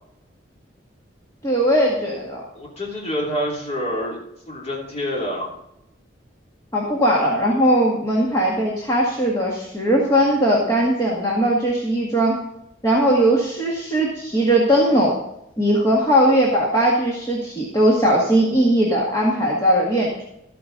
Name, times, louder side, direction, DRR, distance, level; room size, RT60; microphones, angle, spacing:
voice 1, 1.4-2.4 6.7-12.4 12.8-15.1 15.6-20.2, right 1 dB, 20° left, -4 dB, 1.9 m, -19 dB
voice 2, 2.5-4.2 4.5-5.5, equal, 35° left, -2 dB, 3.0 m, -27 dB
13.5 x 8.9 x 4.0 m, 0.81 s
head